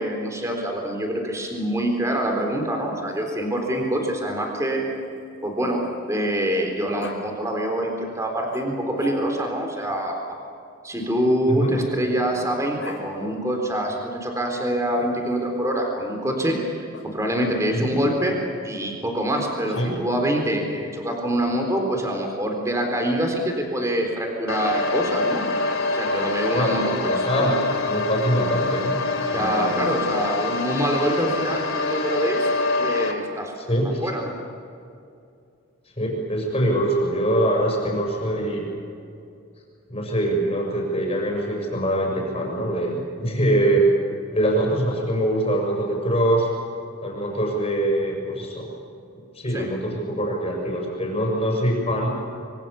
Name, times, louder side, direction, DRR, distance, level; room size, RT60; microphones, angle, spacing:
voice 1, 0.0-4.8 5.4-10.4 10.8-18.3 18.6-25.4 25.9-27.6 29.3-32.5 32.8-33.5 34.0-34.3 49.5-49.7, right 1 dB, 15° right, 2 dB, 3.9 m, -25 dB
Growling, 2.9-6.3 7.0-7.2 8.5-9.6 10.9-13.0 14.9-15.6 16.9-17.1 19.4-20.3, left 2 dB, 65° left, 4.8 m, -43 dB
sound 1, 24.5-33.1, left 3 dB, 80° left, 3.2 m, -25 dB
voice 2, 26.5-27.5 27.9-29.0 29.3-30.0 33.6-34.1 36.0-38.7 39.9-43.9 44.3-46.5 47.0-48.7 49.3-52.1, right 1 dB, 30° left, 0 dB, 6.6 m, -23 dB
26.5 x 25.0 x 7.1 m, 2.5 s
head